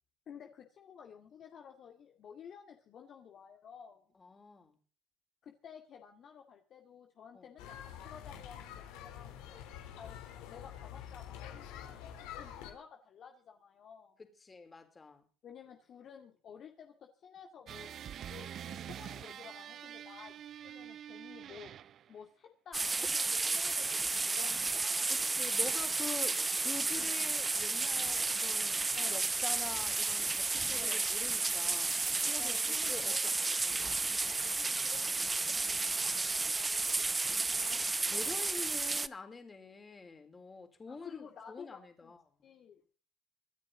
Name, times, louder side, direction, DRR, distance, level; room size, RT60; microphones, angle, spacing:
voice 1, 0.3-4.1 5.4-12.0 12.4-14.2 15.4-17.9 18.3-21.7 22.1-25.2 27.0-27.2 28.9-29.3 30.7-31.1 32.4-33.9 34.4-35.1 35.5-37.1 40.9-42.1 42.4-42.9, left 7 dB, 55° left, 3 dB, 2.1 m, -53 dB
voice 2, 4.1-4.8 7.3-7.5 14.2-15.3 25.1-33.1 33.5-34.0 37.4-42.2, left 4 dB, 25° left, 6 dB, 4.2 m, -47 dB
sound 1, 7.6-12.7, left 10 dB, 85° left, 3.5 m, -47 dB
sound 2, 17.7-22.1, right 10 dB, 55° right, 0.6 m, -46 dB
sound 3, 22.7-39.1, right 3 dB, 20° right, 0.8 m, -32 dB
25.5 x 9.9 x 3.9 m, 0.42 s
supercardioid pair, 85°, 0 cm